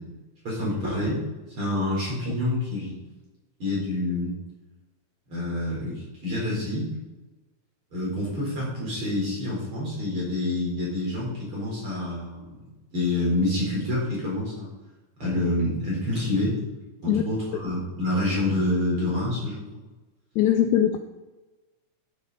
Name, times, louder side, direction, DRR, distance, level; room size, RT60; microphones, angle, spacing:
voice 1, 0.4-1.2 1.6-3.0 3.6-4.4 5.3-6.9 7.9-12.6 12.9-14.7 15.2-16.6 17.0-19.8, left 1 dB, 40° right, -5 dB, 4.9 m, -27 dB
voice 2, 20.4-21.0, left 10 dB, 80° left, 7 dB, 1.9 m, -20 dB
13.0 x 8.4 x 4.0 m, 1.1 s
omnidirectional pair, 3.5 m